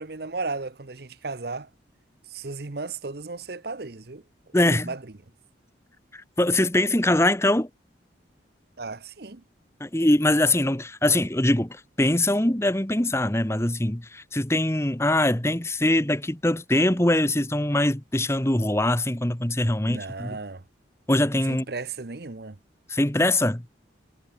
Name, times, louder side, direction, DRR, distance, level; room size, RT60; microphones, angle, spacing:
voice 1, 0.0-1.7 2.3-4.2 4.6-5.0 8.8-9.4 19.8-20.6 21.5-22.6, right 3 dB, 55° right, 0.9 m, -35 dB
voice 2, 4.5-4.9 6.1-7.7 9.8-20.4 21.1-21.7 22.9-23.6, left 1 dB, 15° left, 1.2 m, -23 dB
head